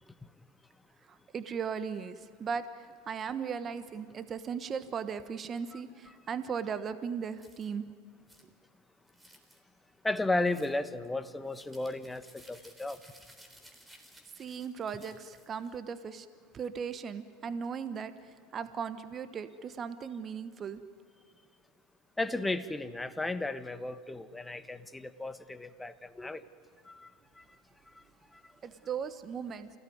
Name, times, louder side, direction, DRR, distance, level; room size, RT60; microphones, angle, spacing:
voice 1, 1.1-7.9 14.4-16.3 16.5-20.8 28.6-29.7, right 6 dB, 35° right, 1.2 m, -37 dB
sound 1, 7.4-7.7 8.3-8.5 9.1-9.6 10.4-10.8 11.5-15.7, right 1 dB, 10° right, 3.9 m, -58 dB
voice 2, 10.0-12.2 12.5-13.0 22.2-26.4 26.9-27.1, left 2 dB, 10° left, 1.3 m, -34 dB
28.5 x 17.0 x 9.5 m
hypercardioid pair, 90°, 0 cm